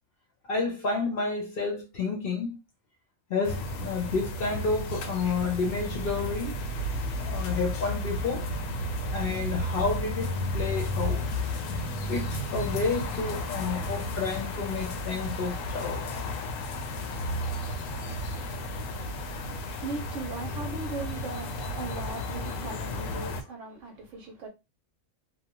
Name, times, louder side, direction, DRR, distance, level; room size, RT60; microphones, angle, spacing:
voice 1, 0.5-2.6 3.3-6.6 7.2-8.5 9.1-11.3 12.1-16.2 19.1-19.2, left 4 dB, 55° left, 0.7 m, -30 dB
sound 1, 3.4-23.4, left 1 dB, 80° left, 1.0 m, -33 dB
voice 2, 19.6-24.5, right 3 dB, 70° right, 1.0 m, -38 dB
2.7 x 2.0 x 2.9 m
omnidirectional pair, 1.4 m